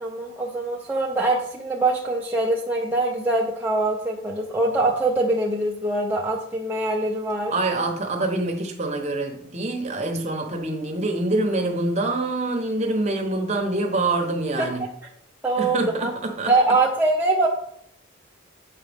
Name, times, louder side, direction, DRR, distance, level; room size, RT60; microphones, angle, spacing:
voice 1, 0.0-7.5 14.6-14.7 15.4-16.1 16.5-17.5, right 2 dB, 10° right, -3 dB, 0.6 m, -23 dB
voice 2, 7.5-14.9 15.6-16.5, right 2 dB, 30° right, 3 dB, 0.9 m, -25 dB
7.4 x 5.0 x 3.5 m, 0.66 s
head